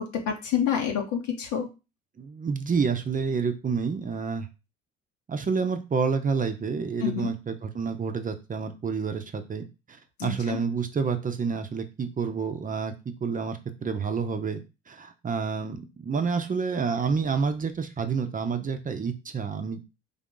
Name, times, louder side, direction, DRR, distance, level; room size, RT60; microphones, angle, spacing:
voice 1, 0.0-1.7 7.0-7.3 10.2-10.6, left 8 dB, 75° left, 1 dB, 0.9 m, -28 dB
voice 2, 2.2-4.5 5.3-12.9 13.2-14.6 14.9-19.8, right 5 dB, 30° right, 7 dB, 0.6 m, -29 dB
3.6 x 2.4 x 3.7 m, 0.28 s
supercardioid pair, 70°, 29 cm